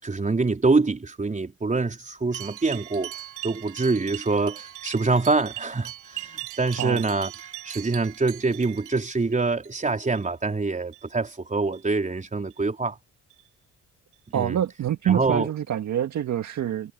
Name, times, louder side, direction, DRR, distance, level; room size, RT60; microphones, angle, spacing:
voice 1, 0.0-3.1 3.4-13.0 14.3-14.6 15.1-15.5, right 3 dB, 25° right, 4.4 m, -25 dB
sound 1, 2.3-9.7 10.0-10.5 10.8-11.1 11.7-11.9 12.5-12.6 13.3-13.4 14.1-14.2, right 15 dB, 85° right, 2.8 m, -40 dB
voice 2, 14.3-16.9, right 10 dB, 65° right, 2.0 m, -26 dB
cardioid pair, 90°, 30 cm